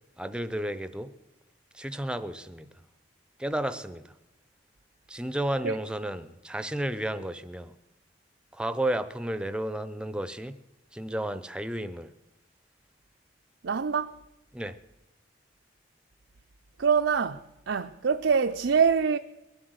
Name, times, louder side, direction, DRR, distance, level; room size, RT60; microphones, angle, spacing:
voice 1, 0.2-1.1 1.7-2.7 3.4-4.0 5.1-7.7 8.5-10.6 10.9-12.1 14.5-14.8, right 1 dB, 5° right, 0.7 m, -32 dB
voice 2, 13.6-14.2 16.8-19.2, right 6 dB, 75° right, 0.6 m, -25 dB
22.0 x 7.8 x 8.0 m
head